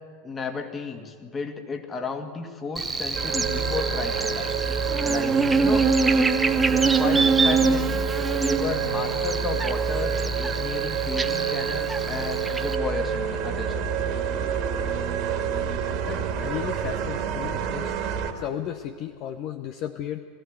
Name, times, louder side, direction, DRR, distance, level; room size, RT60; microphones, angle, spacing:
voice 1, 0.2-4.5 5.0-6.3 6.7-8.1 8.4-13.9, left 4 dB, 25° left, 5 dB, 2.2 m, -33 dB
Buzz, 2.8-12.8, right 4 dB, 15° right, 1.0 m, -25 dB
sound 1, 3.1-18.3, right 6 dB, 50° right, 2.1 m, -28 dB
voice 2, 16.1-17.9 18.3-20.2, left 10 dB, 50° left, 8 dB, 0.8 m, -34 dB
21.5 x 15.5 x 8.1 m, 2.2 s
hypercardioid pair, 85°, 0 cm